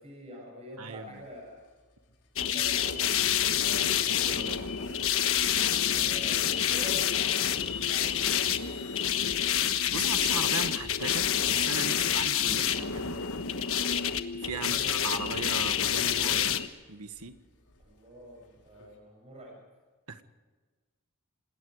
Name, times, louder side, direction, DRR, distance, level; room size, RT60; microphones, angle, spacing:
voice 1, 0.0-1.6 2.5-3.2 5.9-8.7 14.5-15.0 17.8-19.7, left 1 dB, 30° right, -1 dB, 7.8 m, -46 dB
voice 2, 0.8-1.2 3.6-4.6 9.9-13.1 14.4-16.6 16.9-17.4 20.1-20.2, right 4 dB, 75° right, 9 dB, 1.6 m, -38 dB
Hiss, 1.1-19.0, left 7 dB, 85° left, 5.2 m, -53 dB
sound 1, 2.4-16.7, left 9 dB, 65° left, 1.3 m, -28 dB
27.5 x 20.0 x 4.9 m, 1.4 s
head